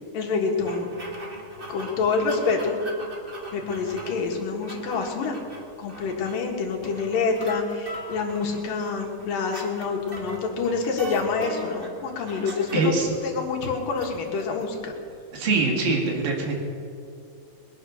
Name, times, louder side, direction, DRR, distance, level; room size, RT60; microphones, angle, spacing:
voice 1, 0.1-0.9 1.7-2.8 3.5-5.3 5.8-12.9 13.2-14.9, left 4 dB, 70° left, 1 dB, 3.4 m, -27 dB
sound 1, 0.6-15.2, equal, 40° right, 0.8 m, -40 dB
voice 2, 12.7-13.1 15.3-16.5, right 3 dB, 85° right, 1 dB, 4.1 m, -23 dB
21.0 x 9.9 x 6.4 m, 2.4 s
omnidirectional pair, 4.1 m